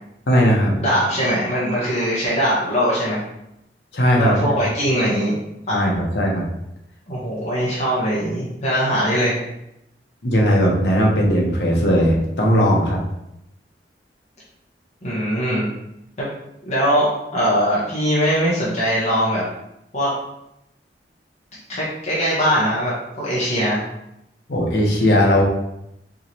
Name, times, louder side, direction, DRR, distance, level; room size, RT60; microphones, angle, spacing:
voice 1, 0.3-0.7 3.9-4.6 5.7-6.4 10.2-13.0 24.5-25.4, equal, 75° left, -2 dB, 1.0 m, -18 dB
voice 2, 0.8-3.2 4.2-5.3 5.7-5.9 7.1-9.4 15.0-15.7 16.2-16.3 16.6-19.5 19.9-20.1 21.7-23.8, equal, 40° left, -8 dB, 1.2 m, -21 dB
4.8 x 3.1 x 2.8 m, 0.82 s
head